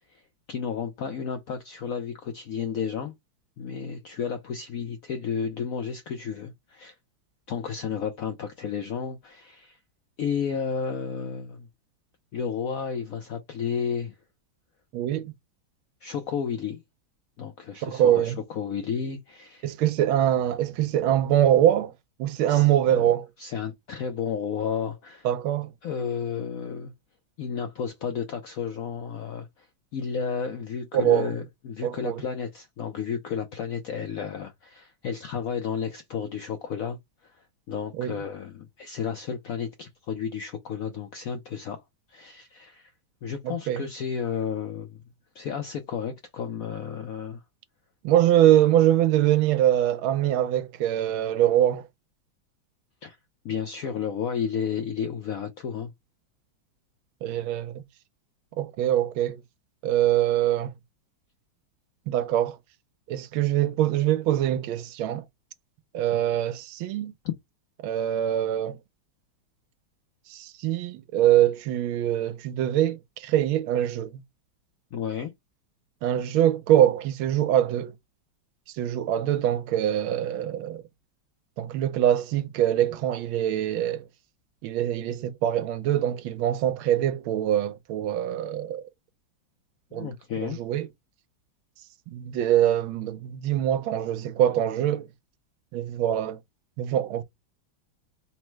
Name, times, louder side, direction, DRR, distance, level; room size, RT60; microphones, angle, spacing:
voice 1, 0.5-3.1 3.6-6.9 7.5-9.8 10.2-11.7 12.3-14.1 16.0-16.8 17.4-19.8 22.5-23.1 23.4-25.3 25.8-26.9 27.4-29.7 29.9-37.0 37.2-41.8 42.1-42.9 43.2-45.0 45.3-47.4 53.0-53.2 53.4-55.9 74.9-75.3 89.9-90.6, left 7 dB, 90° left, 0.7 m, -32 dB
voice 2, 14.9-15.3 17.8-18.4 19.6-21.9 22.2-23.3 25.2-25.7 30.9-31.3 31.8-32.2 38.0-38.2 43.4-43.8 48.0-51.9 57.2-57.8 58.6-59.4 59.8-60.7 62.1-62.6 63.1-65.2 65.9-67.1 67.8-68.8 70.3-74.1 76.0-77.9 78.8-80.8 81.6-84.0 84.6-88.9 89.9-90.9 92.1-95.1 95.7-96.4 96.8-97.2, right 11 dB, 90° right, 1.4 m, -23 dB
4.2 x 2.1 x 4.5 m
omnidirectional pair, 2.2 m